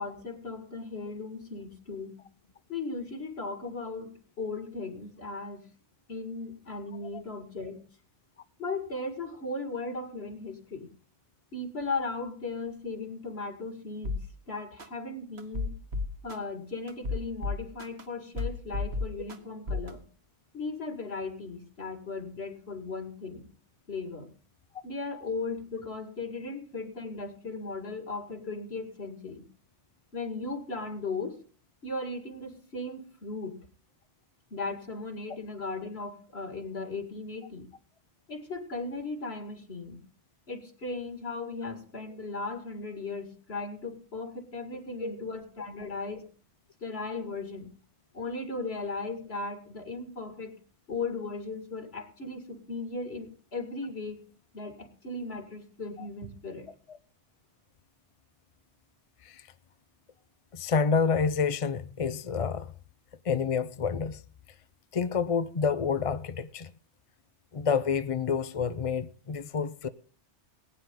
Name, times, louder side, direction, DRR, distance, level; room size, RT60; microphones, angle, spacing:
voice 1, 0.0-2.2 2.7-5.7 6.1-7.8 8.6-10.9 11.5-15.8 16.2-20.0 20.5-23.5 23.9-24.3 24.8-29.4 30.1-31.4 31.8-33.7 34.5-37.7 38.3-40.0 40.5-46.3 46.8-47.7 48.1-50.5 50.9-54.2 54.5-56.7, left 3 dB, 60° left, 2.5 m, -37 dB
sound 1, 14.0-14.2 14.8-14.9 15.4-16.4 16.9-18.0 18.4-19.4 19.7-19.9, left 3 dB, 65° right, 1.7 m, -32 dB
voice 2, 60.5-62.7 63.2-64.2 64.9-66.7 67.5-69.9, left 5 dB, 40° left, 0.5 m, -28 dB
19.5 x 9.3 x 3.8 m
omnidirectional pair, 1.2 m